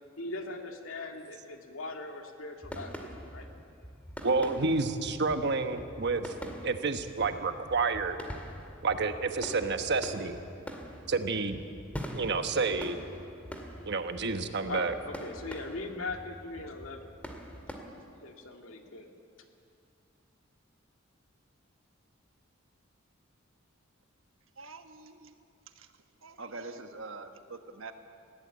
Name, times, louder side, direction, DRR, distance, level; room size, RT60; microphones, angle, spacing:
voice 1, 0.2-3.5 14.7-17.1 18.2-19.1, left 2 dB, 85° left, 3 dB, 2.2 m, -40 dB
sound 1, 2.6-17.8, equal, 5° left, 2.1 m, -44 dB
voice 2, 4.2-6.3 6.6-8.2 8.8-10.4 11.1-11.6 12.1-13.0 13.8-14.9, right 4 dB, 60° right, 7 dB, 1.2 m, -29 dB
voice 3, 24.6-25.3 25.7-25.9 26.2-27.9, right 3 dB, 75° right, 7 dB, 1.4 m, -44 dB
20.0 x 16.0 x 8.6 m, 2.5 s
head